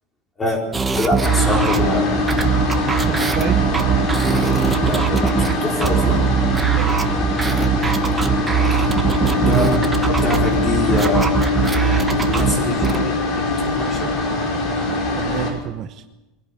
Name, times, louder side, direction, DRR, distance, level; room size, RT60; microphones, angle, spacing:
sound 1, 0.7-13.0, right 7 dB, 10° right, 1.2 m, -21 dB
voice 1, 0.9-2.0 4.8-6.2 9.3-9.7 10.1-11.3 12.2-14.1, left 1 dB, 15° left, 1 dB, 4.7 m, -24 dB
sound 2, 1.2-15.5, left 3 dB, 45° left, 5.3 m, -22 dB
voice 2, 2.6-3.7 6.7-7.2 15.2-16.0, right 11 dB, 35° right, 9 dB, 0.8 m, -30 dB
23.5 x 17.0 x 8.5 m, 1.0 s
cardioid pair, 175°, 0 cm